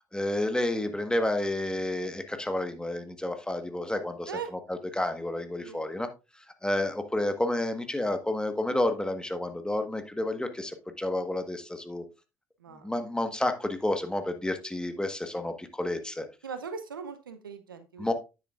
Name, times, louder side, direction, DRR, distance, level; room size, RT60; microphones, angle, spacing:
voice 1, 0.1-4.3 4.7-6.1 6.6-12.0 12.8-16.2 18.0-18.1, left 1 dB, 5° left, 7 dB, 1.4 m, -30 dB
voice 2, 16.4-18.1, right 6 dB, 85° right, 10 dB, 0.7 m, -39 dB
9.8 x 7.6 x 2.5 m, 0.28 s
figure-of-eight pair, 55°, 11 cm